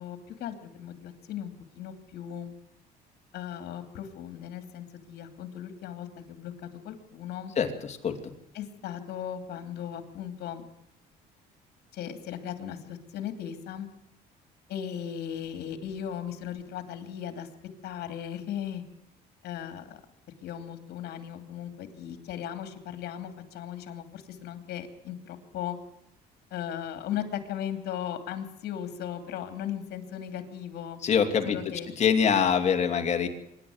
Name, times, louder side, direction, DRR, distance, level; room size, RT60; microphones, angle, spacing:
voice 1, 0.0-2.5 3.3-7.5 8.5-10.6 11.9-13.9 14.7-17.5 17.8-18.8 19.4-20.0 20.4-25.8 26.5-31.0 31.4-31.9, left 9 dB, 75° left, 7 dB, 2.8 m, -37 dB
voice 2, 31.0-31.6 32.0-33.3, left 7 dB, 40° left, 5 dB, 2.5 m, -23 dB
25.0 x 11.0 x 9.5 m, 0.80 s
cardioid pair, 110°, 17 cm